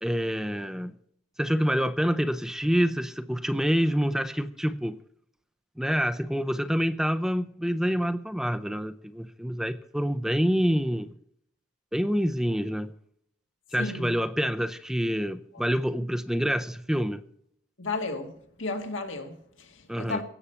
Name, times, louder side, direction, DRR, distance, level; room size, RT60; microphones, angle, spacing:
voice 1, 0.0-0.9 1.4-5.0 5.8-11.1 11.9-12.9 13.7-17.2 19.9-20.2, equal, 5° right, 0.5 m, -27 dB
voice 2, 13.8-14.1 15.5-15.6 17.8-18.3 18.6-20.2, left 3 dB, 90° left, 2.2 m, -33 dB
17.0 x 7.2 x 6.9 m
head